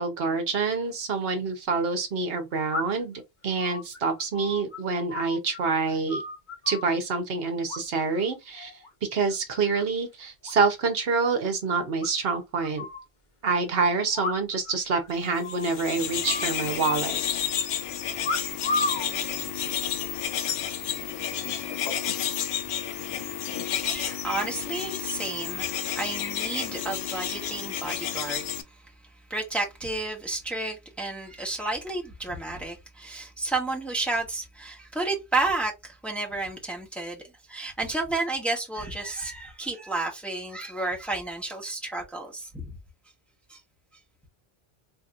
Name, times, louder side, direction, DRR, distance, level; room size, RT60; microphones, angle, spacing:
voice 1, 0.0-6.2 6.7-8.7 9.1-12.9 13.4-17.2, right 4 dB, 70° right, 1.0 m, -27 dB
sound 1, 0.9-1.0 2.7-3.2 3.6-5.6 5.9-6.9 7.7-8.2 8.5-8.9 9.3-9.8 10.1-10.2 10.4-10.5 10.8-10.9 11.2-11.3 12.0-13.0 14.1-14.7 15.0-15.1 15.4-15.8 16.2-17.1 18.2-19.1 19.8-20.2, left 3 dB, 50° left, 0.9 m, -33 dB
sound 2, 15.4-28.6, left 9 dB, 75° left, 0.8 m, -31 dB
voice 2, 23.8-28.4 29.3-37.2 37.5-42.7 43.5-43.6, right 2 dB, ahead, 1.1 m, -31 dB
4.2 x 2.8 x 2.4 m
omnidirectional pair, 1.0 m